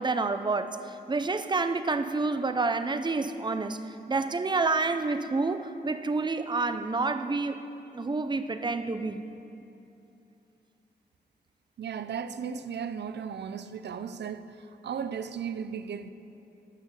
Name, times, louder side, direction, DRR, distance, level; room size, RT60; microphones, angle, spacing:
voice 1, 0.0-7.6 7.9-9.2, right 3 dB, 25° right, 0.6 m, -29 dB
voice 2, 11.8-16.1, right 7 dB, 75° right, 0.5 m, -36 dB
13.5 x 6.4 x 8.2 m
wide cardioid pair, 100°, 18 cm